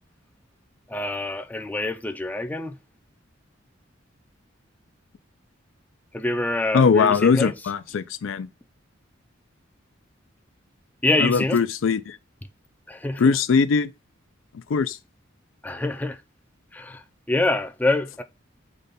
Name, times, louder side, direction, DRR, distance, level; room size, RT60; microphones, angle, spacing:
voice 1, 0.9-2.8 6.1-7.5 11.0-11.6 12.9-13.2 15.6-16.2 16.7-17.0 17.3-18.2, left 2 dB, 10° left, 0.3 m, -25 dB
voice 2, 6.7-8.5 11.2-12.2 13.2-13.9 14.7-15.0, left 5 dB, 85° left, 0.4 m, -20 dB
5.0 x 2.3 x 4.0 m
head